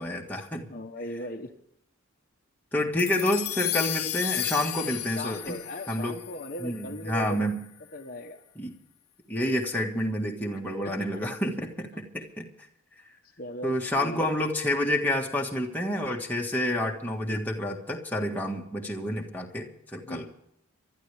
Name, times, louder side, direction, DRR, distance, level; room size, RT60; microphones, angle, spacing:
voice 1, 0.0-0.7 2.7-5.6 5.9-6.1 6.6-7.6 8.6-8.7 9.3-12.5 13.6-20.3, left 1 dB, 10° left, 0 dB, 1.7 m, -29 dB
voice 2, 0.7-1.5 5.2-7.5 7.9-8.4 10.5-11.2 13.4-14.3 20.0-20.3, equal, 40° left, 4 dB, 1.1 m, -38 dB
sound 1, 3.0-7.5, left 14 dB, 90° left, 0.8 m, -34 dB
25.0 x 12.5 x 3.5 m, 0.76 s
head